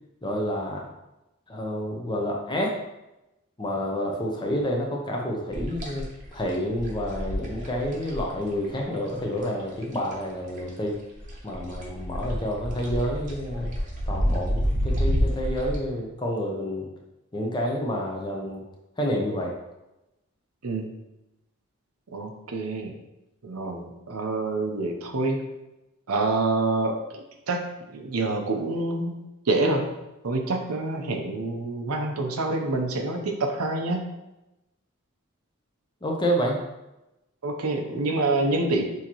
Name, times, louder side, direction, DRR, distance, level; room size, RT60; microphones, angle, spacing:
voice 1, 0.2-0.9 1.5-2.8 3.6-11.0 11.4-13.7 14.1-16.9 17.3-18.6 19.0-19.5 36.0-36.6, equal, 20° left, 0 dB, 0.7 m, -29 dB
sound 1, 5.5-10.3 10.6-15.8, equal, 35° right, 0.8 m, -29 dB
voice 2, 22.1-22.9 23.4-25.5 26.1-27.6 27.9-29.1 29.5-29.9 30.2-34.0 37.4-38.8, right 2 dB, 90° right, 3 dB, 0.7 m, -27 dB
6.3 x 2.9 x 3.0 m, 0.95 s
head